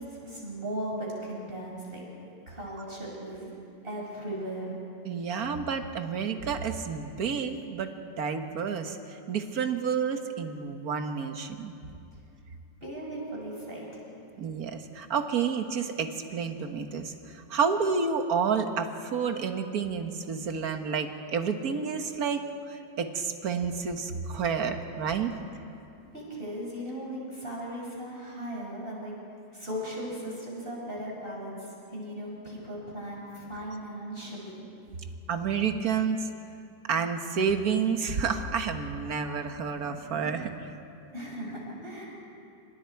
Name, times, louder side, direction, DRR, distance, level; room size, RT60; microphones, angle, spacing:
voice 1, 0.0-2.0 2.5-3.5 3.8-4.8 12.8-14.0 26.1-29.1 29.5-34.6 41.1-42.1, right 1 dB, 30° right, -4 dB, 6.1 m, -37 dB
voice 2, 5.0-11.7 14.4-25.3 35.3-36.3 36.9-40.7, right 6 dB, 55° right, 6 dB, 1.7 m, -30 dB
28.0 x 26.0 x 4.7 m, 2.6 s
omnidirectional pair, 2.0 m